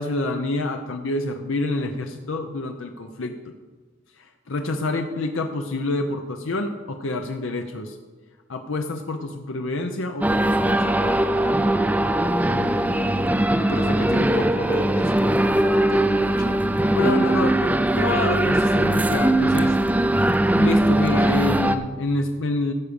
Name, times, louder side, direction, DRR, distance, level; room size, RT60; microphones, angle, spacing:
voice 1, 0.0-3.3 4.2-8.0 8.5-11.1 16.9-19.8 20.5-22.7, left 2 dB, 75° left, 5 dB, 0.7 m, -27 dB
sound 1, 10.2-21.8, right 1 dB, 10° right, 0.4 m, -20 dB
voice 2, 12.4-16.5, left 1 dB, 45° left, 6 dB, 1.2 m, -32 dB
15.0 x 5.1 x 6.9 m, 1.3 s
head